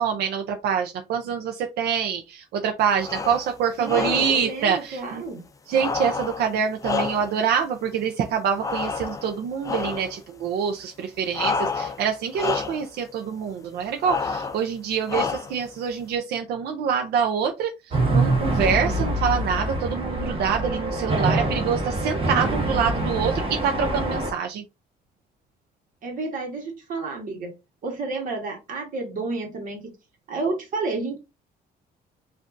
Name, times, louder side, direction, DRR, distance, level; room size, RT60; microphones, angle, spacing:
voice 1, 0.0-5.2 5.7-24.6, right 7 dB, 75° right, 4 dB, 0.7 m, -26 dB
sound 1, 3.0-3.5 3.8-4.5 5.7-7.5 8.6-9.3 9.6-10.2 11.3-12.1 12.3-12.9 14.0-14.6 15.1-15.7, left 5 dB, 20° left, 0.5 m, -29 dB
voice 2, 3.8-5.4 26.0-27.5 27.8-29.9 30.3-31.2, right 3 dB, 55° right, 2 dB, 1.4 m, -30 dB
sound 2, 17.9-24.3, right 1 dB, 35° right, 1.4 m, -25 dB
7.2 x 2.6 x 2.6 m, 0.25 s
cardioid pair, 150°, 17 cm